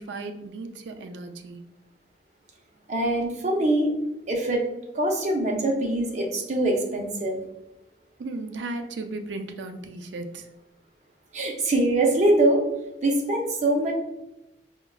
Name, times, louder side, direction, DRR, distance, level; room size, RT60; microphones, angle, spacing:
voice 1, 0.0-1.6 8.2-10.5, right 2 dB, 90° right, 7 dB, 0.4 m, -35 dB
voice 2, 2.9-3.9 4.3-4.6 4.9-7.4 11.3-12.6 13.0-13.9, right 1 dB, 40° right, 0 dB, 0.6 m, -23 dB
4.6 x 2.2 x 2.3 m, 0.90 s
head